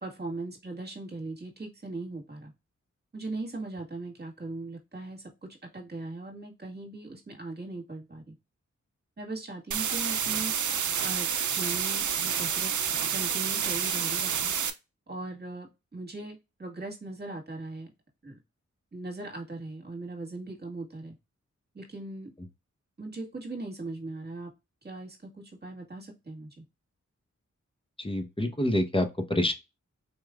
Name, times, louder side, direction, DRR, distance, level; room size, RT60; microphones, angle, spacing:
voice 1, 0.0-2.5 3.1-8.3 9.2-10.5 11.0-12.7 13.1-14.5 15.1-17.9 18.2-18.4 18.9-21.1 21.7-22.3 23.0-24.5 24.8-26.6, right 2 dB, 35° right, 1.8 m, -39 dB
sound 1, 9.7-14.7, right 8 dB, 80° right, 0.6 m, -29 dB
voice 2, 28.0-29.5, left 1 dB, 20° left, 1.0 m, -27 dB
4.5 x 3.1 x 2.4 m
cardioid pair, 40°, 30 cm